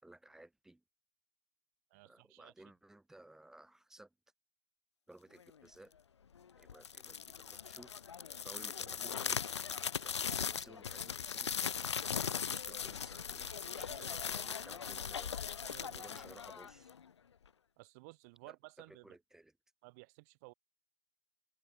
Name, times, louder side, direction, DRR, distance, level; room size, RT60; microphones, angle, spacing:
voice 1, 0.0-0.8 2.1-4.1 5.1-5.9 6.6-8.0 8.4-9.4 10.0-15.4 15.9-17.0 18.5-19.5, right 1 dB, 5° right, 5.2 m, -58 dB
voice 2, 1.9-2.5 13.8-14.6 15.6-16.2 17.8-19.2 19.8-20.5, right 27 dB, 30° right, 2.4 m, -56 dB
sound 1, 6.7-17.0, left 7 dB, 60° left, 0.9 m, -39 dB
open air
figure-of-eight pair, 125°, 16 cm